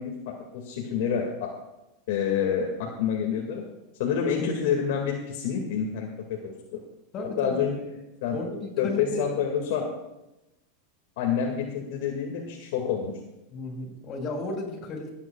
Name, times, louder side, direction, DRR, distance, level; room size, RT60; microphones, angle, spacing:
voice 1, 0.0-1.5 2.1-3.6 4.0-6.8 7.4-8.4 8.8-9.9 11.2-13.1, left 7 dB, 70° left, -1 dB, 2.1 m, -28 dB
voice 2, 7.1-7.6 8.3-9.2 13.5-15.1, left 3 dB, 35° left, 0 dB, 5.5 m, -34 dB
25.5 x 9.7 x 2.4 m, 0.96 s
supercardioid pair, 130°, 0 cm